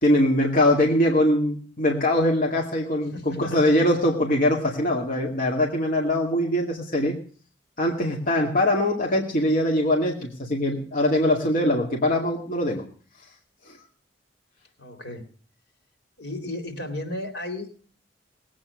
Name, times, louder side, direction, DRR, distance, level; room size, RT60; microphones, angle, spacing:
voice 1, 0.0-7.2 7.8-12.8 13.7-13.8, left 1 dB, 50° left, 0 dB, 2.2 m, -22 dB
voice 2, 3.0-3.7 14.8-15.2 16.2-17.7, left 1 dB, 80° left, 3 dB, 4.0 m, -34 dB
19.0 x 8.8 x 6.2 m, 0.43 s
head